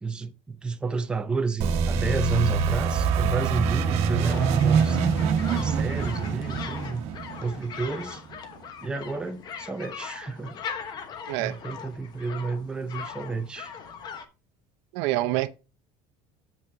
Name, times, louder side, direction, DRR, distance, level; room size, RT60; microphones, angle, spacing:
voice 1, 0.0-5.0 5.4-7.0 7.4-8.2 8.8-10.6 11.4-13.7, right 4 dB, 5° right, 0.5 m, -31 dB
sound 1, 1.6-8.2, right 5 dB, 55° right, 1.3 m, -25 dB
sound 2, 4.2-14.3, left 6 dB, 35° left, 1.1 m, -40 dB
voice 2, 14.9-15.5, right 17 dB, 80° right, 0.8 m, -26 dB
8.6 x 7.4 x 2.7 m
cardioid pair, 175°, 13 cm